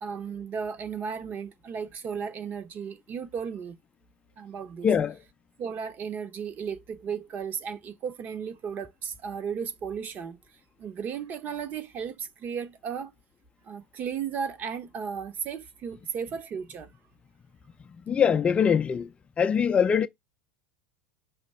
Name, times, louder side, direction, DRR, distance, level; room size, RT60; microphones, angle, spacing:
voice 1, 0.0-3.8 4.4-4.9 5.6-10.4 10.8-13.1 13.6-16.9, right 7 dB, 35° right, 0.9 m, -35 dB
voice 2, 4.8-5.2 18.1-19.1 19.4-20.1, left 7 dB, 20° left, 0.5 m, -22 dB
5.9 x 3.0 x 5.5 m
supercardioid pair, 120°, 5 cm